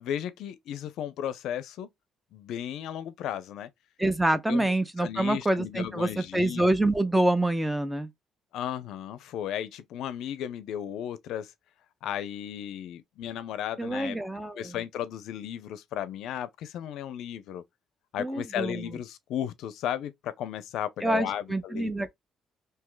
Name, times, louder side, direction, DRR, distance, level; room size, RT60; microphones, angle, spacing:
voice 1, 0.0-1.9 2.3-3.7 4.5-4.7 5.0-6.6 8.5-11.5 12.0-14.2 14.5-17.6 18.1-21.9, left 10 dB, 80° left, 0.4 m, -35 dB
voice 2, 4.0-8.1 13.8-14.8 18.2-18.9 21.0-22.1, right 1 dB, 5° right, 0.4 m, -26 dB
2.7 x 2.1 x 3.7 m
cardioid pair, 130°, 0 cm